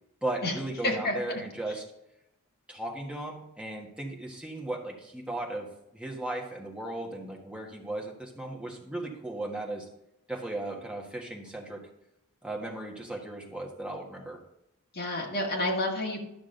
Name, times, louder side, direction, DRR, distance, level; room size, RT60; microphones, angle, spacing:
voice 1, 0.2-1.8 2.7-9.9 10.3-11.8 12.4-14.4, right 2 dB, 5° right, -1 dB, 1.6 m, -36 dB
voice 2, 0.8-1.4 14.9-16.2, left 1 dB, 45° left, -1 dB, 1.9 m, -29 dB
11.5 x 6.3 x 3.9 m, 0.85 s
head